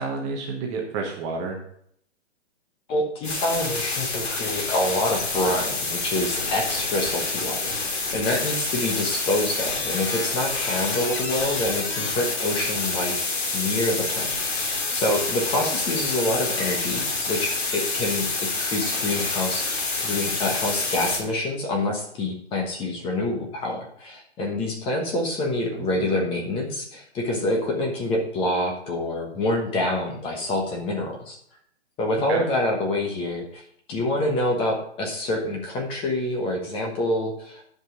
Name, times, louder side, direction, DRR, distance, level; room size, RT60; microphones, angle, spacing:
voice 1, 0.0-1.6 25.7-26.2 32.3-32.4, right 4 dB, 20° right, 1 dB, 1.1 m, -30 dB
voice 2, 2.9-14.3 14.6-31.4 32.0-37.6, left 1 dB, 15° left, 1 dB, 1.2 m, -27 dB
sound 1, 3.2-21.2, left 3 dB, 60° left, 2.7 m, -27 dB
11.0 x 5.3 x 4.9 m, 0.66 s
hypercardioid pair, 150°, 36 cm